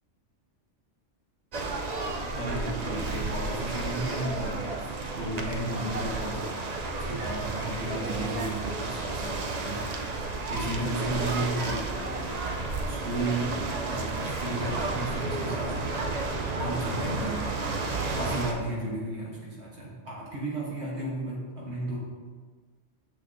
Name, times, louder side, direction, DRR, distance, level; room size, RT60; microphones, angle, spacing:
sound 1, 1.5-18.5, right 3 dB, 50° right, 0.5 m, -32 dB
voice 1, 2.3-6.4 7.0-9.8 10.5-12.0 12.9-15.8 16.5-17.7 18.1-22.0, right 2 dB, 65° right, -5 dB, 1.6 m, -34 dB
7.5 x 6.3 x 2.6 m, 1.5 s
omnidirectional pair, 1.2 m